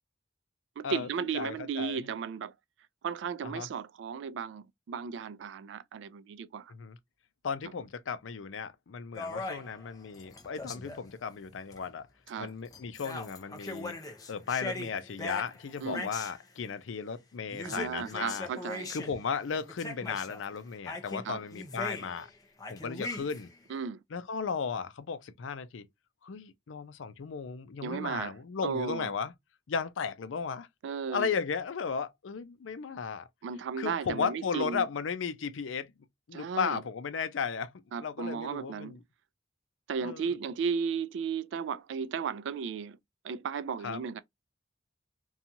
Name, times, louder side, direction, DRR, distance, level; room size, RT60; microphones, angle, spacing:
voice 1, 0.8-2.5 3.0-6.7 12.3-12.5 15.8-16.1 17.6-18.9 21.2-21.4 23.7-24.0 27.8-28.3 28.6-29.1 30.8-31.3 33.4-34.8 36.3-36.8 37.9-39.0 39.9-43.0 43.2-44.2, right 6 dB, 70° right, 0.3 m, -35 dB
voice 2, 1.3-2.0 3.4-3.7 6.7-7.0 7.4-12.1 12.4-14.0 14.3-18.5 18.9-22.3 22.7-23.5 24.1-25.9 26.2-29.3 29.7-30.7 31.1-33.3 33.8-35.9 36.3-37.7 38.0-39.0 40.0-40.3 43.8-44.0, left 6 dB, 90° left, 0.5 m, -35 dB
sound 1, 9.1-11.1 11.7-11.8 12.3-12.4 12.7-16.4 17.5-19.2 19.5-20.4 20.9-22.3 22.6-23.5, left 2 dB, 20° left, 0.5 m, -40 dB
2.9 x 2.3 x 2.6 m
head